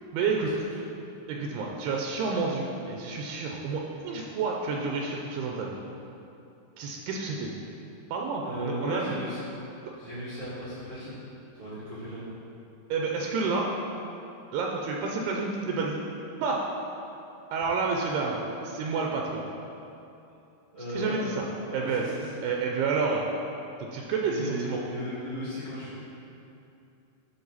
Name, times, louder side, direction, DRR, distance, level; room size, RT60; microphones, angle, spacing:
voice 1, 0.1-0.5 1.3-5.8 6.8-7.5 8.1-9.1 9.9-10.0 12.9-13.7 14.5-16.0 16.4-16.6 17.5-19.4 21.0-21.4 21.7-22.0 22.4-23.3 23.8-24.8, right 4 dB, 85° right, 0 dB, 2.6 m, -29 dB
voice 2, 8.4-9.4 9.9-11.2 11.5-12.3 20.7-21.2 21.6-22.3 24.3-26.0, equal, 35° right, -12 dB, 1.4 m, -36 dB
11.5 x 4.5 x 4.0 m, 2.8 s
omnidirectional pair, 4.7 m